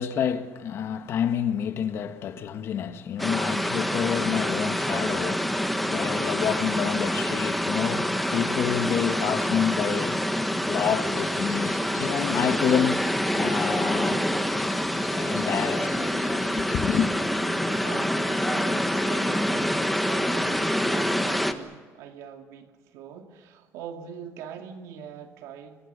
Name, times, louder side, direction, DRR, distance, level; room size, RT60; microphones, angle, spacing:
voice 1, 0.0-10.2 10.7-14.3 15.1-15.9 16.5-17.1, left 8 dB, 50° left, 1.7 m, -28 dB
sound 1, 3.2-21.5, equal, ahead, 1.5 m, -26 dB
sound 2, 11.0-17.1, left 11 dB, 85° left, 3.6 m, -48 dB
voice 2, 17.6-25.9, right 8 dB, 85° right, 2.4 m, -43 dB
28.5 x 23.0 x 6.9 m
cardioid pair, 150°, 5 cm